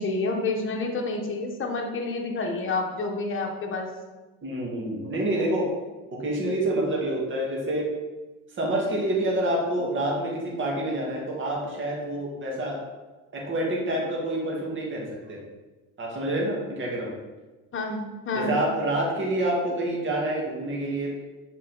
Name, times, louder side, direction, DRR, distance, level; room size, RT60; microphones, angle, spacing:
voice 1, 0.0-3.9 17.7-18.5, left 3 dB, 35° left, 1 dB, 1.2 m, -29 dB
voice 2, 4.4-5.7 6.2-7.9 8.6-12.8 13.3-15.4 16.0-17.1 18.3-21.2, right 1 dB, 35° right, -2 dB, 1.8 m, -27 dB
6.4 x 4.1 x 4.0 m, 1.2 s
supercardioid pair, 100°, 36 cm